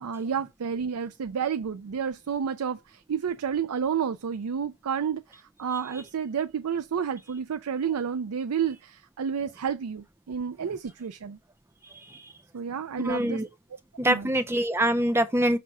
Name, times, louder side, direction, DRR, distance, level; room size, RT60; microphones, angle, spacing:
voice 1, 0.0-11.4 12.5-13.4 14.0-14.3, right 7 dB, 90° right, 0.5 m, -30 dB
voice 2, 13.0-13.5 14.0-15.6, right 1 dB, 10° right, 0.5 m, -24 dB
6.0 x 3.3 x 5.5 m
head